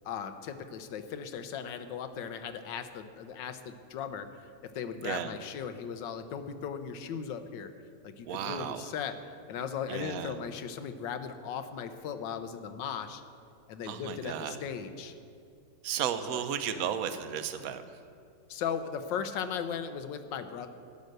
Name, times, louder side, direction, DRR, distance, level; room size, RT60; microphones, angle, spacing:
voice 1, 0.0-4.3 4.7-7.7 8.0-9.1 9.5-13.2 13.7-15.1 16.3-16.4 18.5-20.7, left 7 dB, 90° left, 9 dB, 1.5 m, -37 dB
voice 2, 5.0-5.3 8.2-8.9 9.9-10.4 13.8-14.6 15.8-17.8, right 9 dB, 60° right, 10 dB, 1.1 m, -34 dB
12.0 x 9.4 x 6.5 m, 2.4 s
omnidirectional pair, 1.9 m